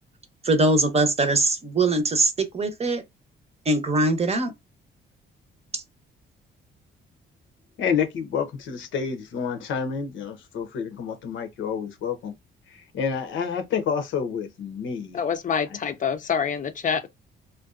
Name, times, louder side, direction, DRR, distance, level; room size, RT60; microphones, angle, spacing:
voice 1, 0.4-3.0 3.7-4.5 5.7-5.8, right 2 dB, 30° right, 0.7 m, -22 dB
voice 2, 7.8-12.3 12.7-15.2 15.7-15.8, left 6 dB, 75° left, 0.7 m, -29 dB
voice 3, 15.1-17.1, left 7 dB, 40° left, 0.5 m, -26 dB
2.5 x 2.2 x 2.3 m
cardioid pair, 90°, 20 cm